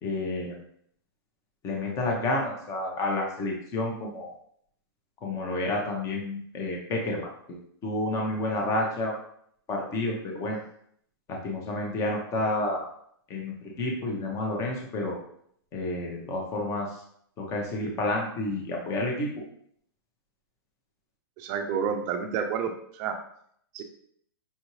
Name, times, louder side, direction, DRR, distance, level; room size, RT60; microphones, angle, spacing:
voice 1, 0.0-0.5 1.6-4.3 5.2-7.6 7.8-9.1 9.7-10.6 11.3-12.8 13.3-15.2 15.7-16.9 17.4-19.3, left 2 dB, 25° left, 0 dB, 0.9 m, -30 dB
voice 2, 21.4-23.2 23.7-23.8, right 7 dB, 30° right, 5 dB, 0.4 m, -30 dB
5.6 x 2.6 x 3.0 m, 0.66 s
hypercardioid pair, 145°, 13 cm